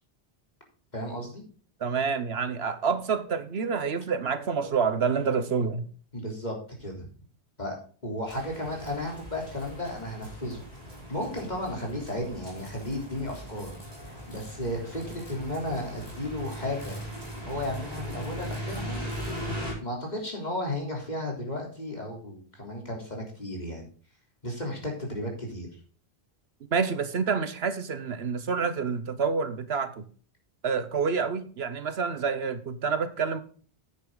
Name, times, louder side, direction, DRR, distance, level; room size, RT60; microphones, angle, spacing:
voice 1, 0.9-1.4 6.1-7.1 7.6-7.8 8.0-10.6 11.1-13.7 14.0-17.0 17.5-19.0 19.8-23.8 24.4-25.7, left 1 dB, 40° left, 3.7 m, -34 dB
voice 2, 1.8-5.9 26.7-30.0 30.6-33.4, right 5 dB, 70° right, 1.2 m, -28 dB
sound 1, 8.3-19.7, equal, 35° right, 4.5 m, -39 dB
sound 2, 12.5-19.5, equal, 15° left, 5.4 m, -55 dB
10.5 x 8.9 x 3.8 m
omnidirectional pair, 1.1 m